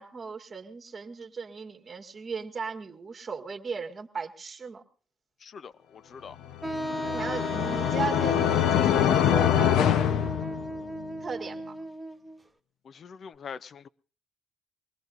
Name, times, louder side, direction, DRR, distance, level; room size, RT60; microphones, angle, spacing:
voice 1, 0.0-4.8 7.1-8.4 8.7-9.7 11.2-11.8, right 5 dB, 35° right, 2.0 m, -37 dB
voice 2, 5.4-6.4 12.9-13.9, left 6 dB, 50° left, 0.6 m, -43 dB
sound 1, 6.5-11.1, left 10 dB, 85° left, 0.8 m, -24 dB
Wind instrument woodwind instrument, 6.6-12.4, equal, 10° right, 1.0 m, -36 dB
23.5 x 19.0 x 2.6 m
cardioid pair, 90°, 0 cm